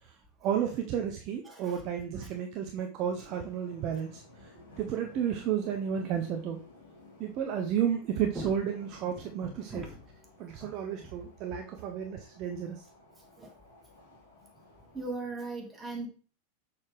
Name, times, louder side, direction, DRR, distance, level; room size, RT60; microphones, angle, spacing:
voice 1, 0.4-4.5 4.8-6.6 7.2-9.8 10.4-12.8, right 8 dB, 40° right, 4 dB, 0.6 m, -32 dB
voice 2, 1.4-1.8 2.2-2.3 3.2-3.4 8.3-8.6 9.4-10.0 10.6-10.7 13.4-13.5 14.9-16.1, right 2 dB, 15° right, 1 dB, 1.9 m, -39 dB
sound 1, 3.0-15.1, left 2 dB, 65° left, 3.0 m, -55 dB
6.4 x 5.6 x 3.2 m, 0.38 s
figure-of-eight pair, 90°, 0 cm